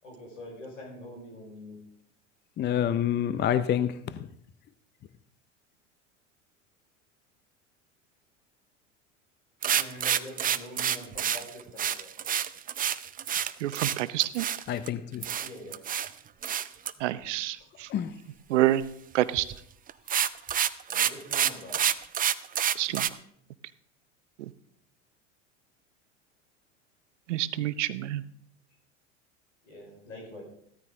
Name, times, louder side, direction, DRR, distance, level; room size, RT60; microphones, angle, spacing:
voice 1, 0.0-1.8 9.7-12.3 15.4-15.8 20.9-21.8 29.6-30.4, left 1 dB, 80° left, 5.4 m, -44 dB
voice 2, 2.6-3.9 14.7-15.2 17.9-18.1, left 10 dB, 30° left, 0.6 m, -27 dB
sound 1, 9.6-14.9 15.2-16.1 16.4-16.9 19.4-19.6 19.9-23.1, right 9 dB, 25° right, 0.6 m, -28 dB
voice 3, 13.6-14.5 17.0-17.9 18.5-18.9 19.1-19.5 22.7-23.1 24.4-24.5 27.3-28.2, right 14 dB, 70° right, 0.8 m, -27 dB
15.5 x 13.5 x 3.8 m
hypercardioid pair, 80°, 37 cm